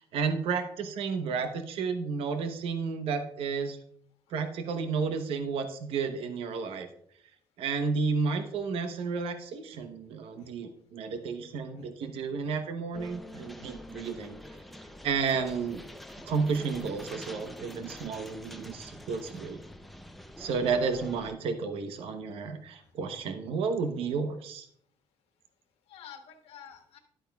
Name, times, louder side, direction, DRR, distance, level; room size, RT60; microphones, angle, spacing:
voice 1, 0.0-3.8 4.3-6.9 7.6-14.4 15.0-15.8 16.2-19.6 20.4-24.7, right 5 dB, 80° right, 7 dB, 0.9 m, -32 dB
sound 1, 12.9-21.3, left 1 dB, ahead, 0.6 m, -46 dB
voice 2, 25.9-27.0, left 8 dB, 90° left, 5 dB, 1.4 m, -50 dB
11.5 x 8.8 x 2.3 m, 0.65 s
cardioid pair, 155°, 10 cm